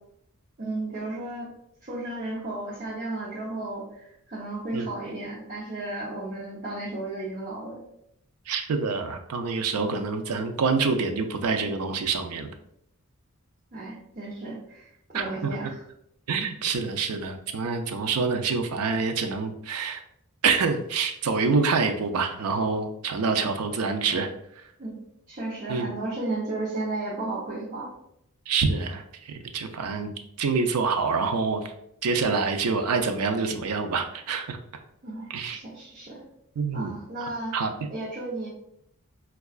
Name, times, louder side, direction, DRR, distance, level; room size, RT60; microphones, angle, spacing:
voice 1, 0.6-1.5 1.8-7.8 13.7-15.8 24.8-25.0 25.3-27.9 35.0-36.2 36.7-37.5 37.9-38.5, right 2 dB, 40° right, -7 dB, 0.8 m, -34 dB
voice 2, 8.5-12.5 15.1-15.5 16.3-20.0 20.4-24.3 25.7-25.9 28.5-31.7 32.0-34.6 35.3-35.6 36.6-36.9 37.5-37.7, right 4 dB, 85° right, 6 dB, 0.4 m, -26 dB
4.6 x 2.3 x 2.3 m, 0.75 s
head